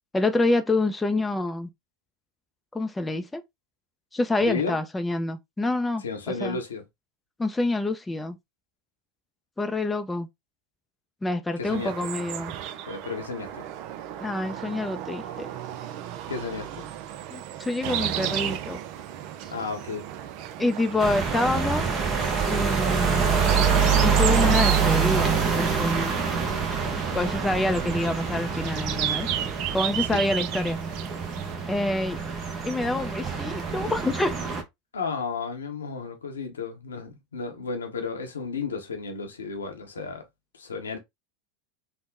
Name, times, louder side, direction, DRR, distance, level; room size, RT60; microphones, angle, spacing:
voice 1, 0.1-1.7 2.7-3.4 4.1-6.0 6.4-6.6 7.4-8.4 9.6-10.3 11.2-12.5 14.2-15.5 17.3-18.8 20.6-21.8 22.5-23.5 24.0-26.1 27.1-29.3 29.7-30.8 31.7-32.2 32.6-34.3, left 2 dB, 10° left, 0.5 m, -27 dB
voice 2, 4.4-4.8 6.0-6.8 11.6-12.1 12.9-13.7 16.3-16.9 19.5-20.1 30.0-30.2 34.9-40.2 40.5-41.0, left 5 dB, 80° left, 0.8 m, -33 dB
sound 1, 11.6-31.6, right 11 dB, 50° right, 0.4 m, -34 dB
sound 2, 21.0-34.6, right 6 dB, 35° right, 0.9 m, -26 dB
3.5 x 2.1 x 3.6 m
figure-of-eight pair, 85°, 0 cm